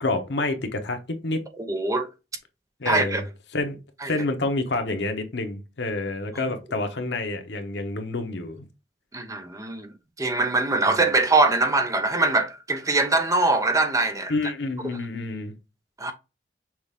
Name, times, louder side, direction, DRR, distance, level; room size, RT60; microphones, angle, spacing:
voice 1, 0.0-1.4 2.8-3.2 3.5-3.8 4.1-8.6 14.3-15.5, left 2 dB, 80° left, 1.0 m, -28 dB
voice 2, 1.6-2.1 2.8-3.2 4.0-4.1 9.1-14.3 14.8-15.0 16.0-16.1, right 2 dB, 20° right, 0.7 m, -23 dB
6.0 x 2.4 x 3.4 m
head